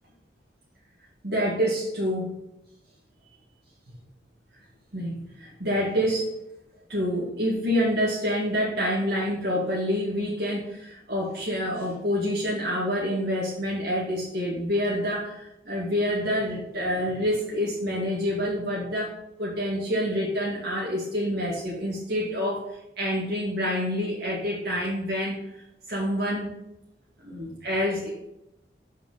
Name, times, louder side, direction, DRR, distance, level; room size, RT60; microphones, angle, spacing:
voice 1, 1.2-2.4 4.9-6.3 6.9-19.1 19.4-22.7 23.0-25.4 25.9-26.5 27.2-28.1, equal, 65° right, -6 dB, 2.1 m, -27 dB
7.3 x 5.2 x 5.5 m, 0.87 s
head